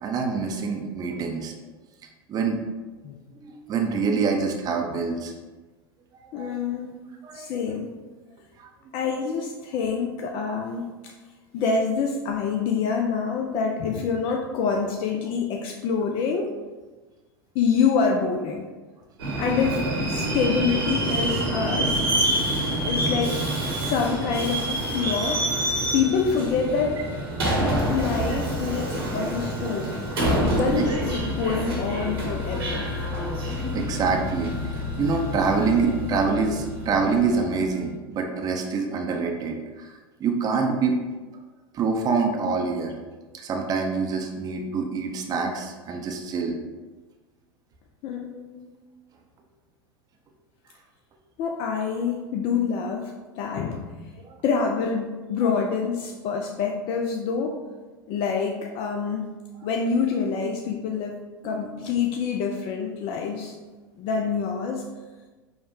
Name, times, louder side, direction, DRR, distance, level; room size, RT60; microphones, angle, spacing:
voice 1, 0.0-1.5 2.3-2.6 3.3-5.3 6.1-6.6 7.2-7.5 8.6-8.7 27.6-27.7 30.8-31.0 33.7-41.0 41.7-43.0 43.3-46.6 54.2-54.4 61.4-61.7, right 4 dB, 30° right, 2 dB, 0.6 m, -26 dB
voice 2, 6.3-6.9 7.3-7.9 8.9-11.1 11.5-16.5 17.5-18.7 19.4-22.1 22.8-23.4 23.7-25.4 25.9-27.0 27.9-29.9 30.4-32.9 48.0-48.7 51.4-54.1 54.4-57.6 58.1-59.3 59.6-61.2 61.4-63.6 64.0-64.8, left 5 dB, 45° left, 2 dB, 0.4 m, -26 dB
Subway metro underground, 19.2-37.6, right 1 dB, 80° right, 1.2 m, -27 dB
5.4 x 2.1 x 3.0 m, 1.3 s
hypercardioid pair, 90°, 12 cm